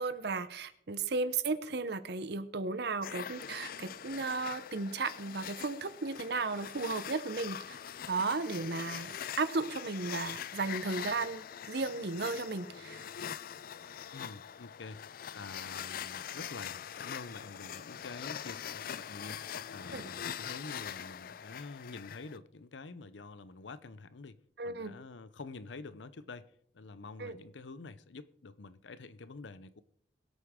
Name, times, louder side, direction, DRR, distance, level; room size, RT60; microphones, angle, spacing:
voice 1, 0.0-7.8 8.1-13.1 19.9-20.0 24.6-25.0 27.2-27.4, right 3 dB, 60° right, 0.8 m, -35 dB
sound 1, 3.0-22.4, left 9 dB, 55° left, 0.4 m, -43 dB
voice 2, 14.1-15.0 15.3-24.4 24.6-29.8, left 3 dB, 80° left, 0.7 m, -47 dB
22.0 x 8.2 x 3.7 m
head